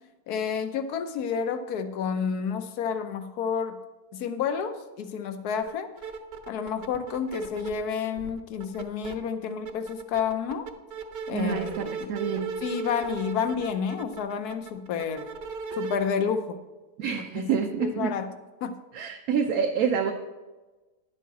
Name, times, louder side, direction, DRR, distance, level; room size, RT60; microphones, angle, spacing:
voice 1, 0.3-3.8 4.1-5.9 6.5-10.7 11.3-12.2 12.6-15.3 15.7-16.6 17.3-18.3 18.6-18.7, left 6 dB, 85° left, 9 dB, 1.3 m, -30 dB
sound 1, 5.6-5.7 6.0-7.8 8.2-9.1 9.5-16.0, right 5 dB, 55° right, 0.9 m, -36 dB
voice 2, 11.3-12.5 17.0-18.1 18.9-20.1, right 6 dB, 75° right, 2 dB, 1.2 m, -27 dB
10.5 x 7.4 x 4.1 m, 1.2 s
omnidirectional pair, 1.6 m